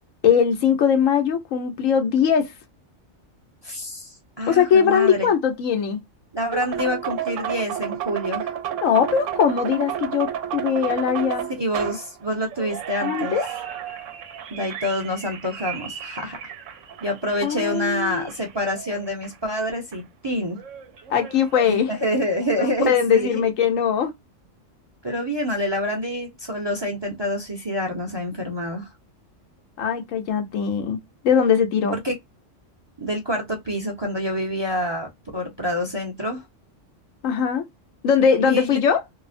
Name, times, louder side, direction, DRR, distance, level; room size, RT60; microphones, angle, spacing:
voice 1, 0.2-2.5 4.5-6.0 8.8-11.5 13.0-13.5 17.4-18.3 21.1-21.9 22.6-24.1 29.8-32.0 37.2-37.6 38.0-39.0, left 7 dB, 90° left, 1.2 m, -20 dB
voice 2, 3.6-5.3 6.3-8.6 11.6-13.4 14.5-16.5 17.0-20.6 21.6-23.4 25.0-28.9 31.9-32.2 33.0-36.4 38.4-38.8, equal, 30° right, 0.5 m, -27 dB
sound 1, 6.5-19.7 19.9-20.0 20.6-22.5, right 9 dB, 80° right, 0.9 m, -32 dB
2.8 x 2.0 x 2.4 m
omnidirectional pair, 1.3 m